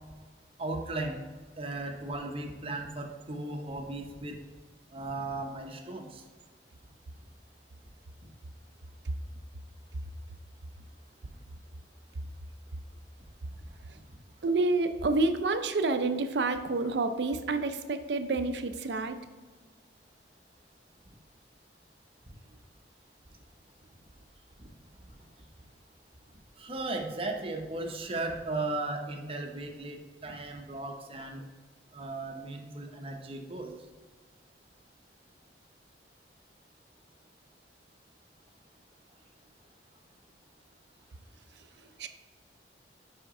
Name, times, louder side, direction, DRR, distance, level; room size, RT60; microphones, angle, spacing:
voice 1, 0.6-1.2 1.6-4.4 4.9-6.2 13.9-14.0 24.6-24.7 26.6-31.4 31.9-33.7, right 2 dB, 30° right, 3 dB, 0.7 m, -36 dB
voice 2, 14.4-19.2 41.5-42.1, right 3 dB, 70° right, 9 dB, 0.5 m, -29 dB
5.9 x 5.0 x 3.7 m, 1.4 s
head